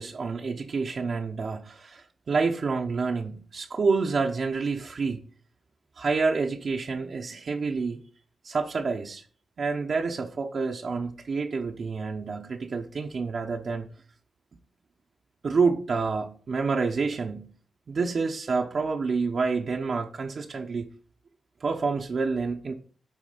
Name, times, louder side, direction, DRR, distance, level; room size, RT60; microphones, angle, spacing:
voice 1, 0.0-5.2 6.0-8.0 8.4-9.2 9.6-13.9 15.4-17.5 17.9-20.9 21.6-22.7, right 4 dB, 60° right, 0.9 m, -28 dB
9.3 x 3.6 x 5.1 m
cardioid pair, 60°, 0 cm